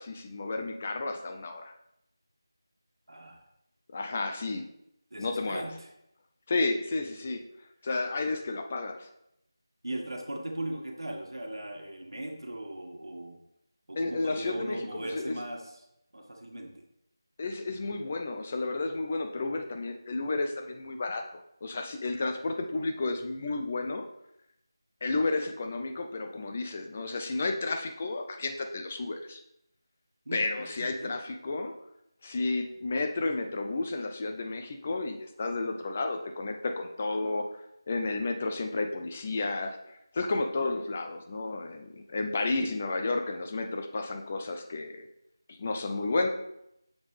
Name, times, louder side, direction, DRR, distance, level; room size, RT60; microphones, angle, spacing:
voice 1, 0.0-1.7 3.9-4.7 5.2-5.6 6.5-7.4 7.8-9.1 14.0-15.4 17.4-24.1 25.0-29.4 30.3-31.7 32.2-45.1 45.5-46.3, left 3 dB, 15° left, 5 dB, 0.4 m, -32 dB
voice 2, 3.1-3.4 5.1-5.9 9.8-13.4 13.9-15.6 16.1-16.7 30.2-31.1, right 1 dB, 75° right, 2 dB, 1.5 m, -38 dB
7.1 x 5.5 x 3.2 m, 0.80 s
figure-of-eight pair, 175°, 2 cm